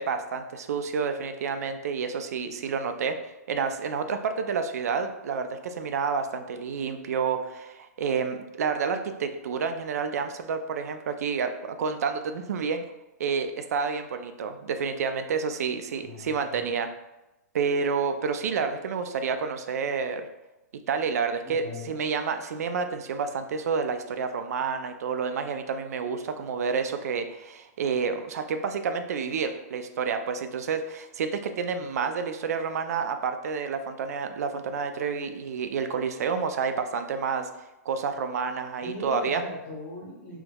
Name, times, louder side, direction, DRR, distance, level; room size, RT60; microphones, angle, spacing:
voice 1, 0.0-3.2 3.5-12.8 13.2-16.9 17.5-20.3 20.9-37.5 37.9-39.4, right 5 dB, 70° right, 8 dB, 0.3 m, -29 dB
voice 2, 16.0-16.7 21.4-22.0 38.8-40.4, left 2 dB, 35° left, -5 dB, 0.7 m, -39 dB
3.4 x 3.0 x 2.2 m, 0.98 s
hypercardioid pair, 175°, 9 cm